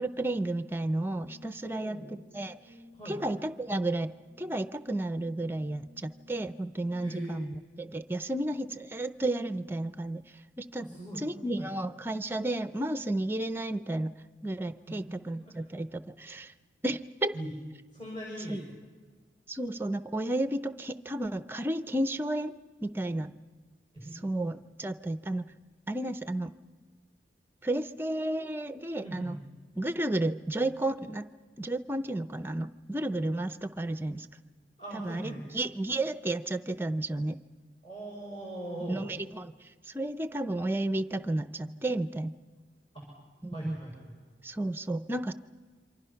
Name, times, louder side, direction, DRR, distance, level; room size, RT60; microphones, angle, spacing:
voice 1, 0.0-2.0 2.3-2.6 3.1-4.1 4.4-10.2 10.6-10.9 11.2-14.1 14.4-16.5 16.8-17.3 18.5-18.6 19.5-22.5 22.8-23.3 24.2-25.4 25.9-26.5 27.6-29.4 29.8-31.2 31.6-34.3 34.9-37.4 38.9-39.5 39.9-42.3 43.4-43.8 44.4-45.3, right 1 dB, 10° right, 12 dB, 0.6 m, -32 dB
Brass instrument, 1.1-7.5, left 2 dB, 85° left, 4.9 m, -57 dB
voice 2, 1.6-2.2 2.9-3.2 7.0-7.4 10.8-11.2 11.6-11.7 14.9-15.0 15.3-15.5 17.3-17.5 17.9-18.6 23.9-24.2 29.0-29.4 34.8-35.4 37.8-39.0 42.9-43.1 43.5-44.1, right 1 dB, 30° left, -3 dB, 6.4 m, -40 dB
28.0 x 25.0 x 5.8 m, 1.5 s
head